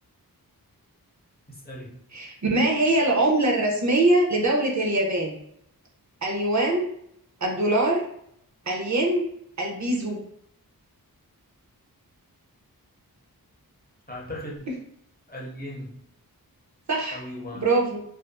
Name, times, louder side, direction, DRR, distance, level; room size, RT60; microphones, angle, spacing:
voice 1, 1.5-2.0 14.1-14.7 15.3-16.0 17.1-17.6, left 1 dB, 25° left, -3 dB, 0.7 m, -37 dB
voice 2, 2.1-5.4 6.2-6.9 7.4-8.1 8.7-9.2 9.6-10.2 16.9-17.2 17.5-18.0, right 2 dB, 50° right, 0 dB, 0.6 m, -23 dB
2.5 x 2.3 x 2.2 m, 0.71 s
wide cardioid pair, 70°, 37 cm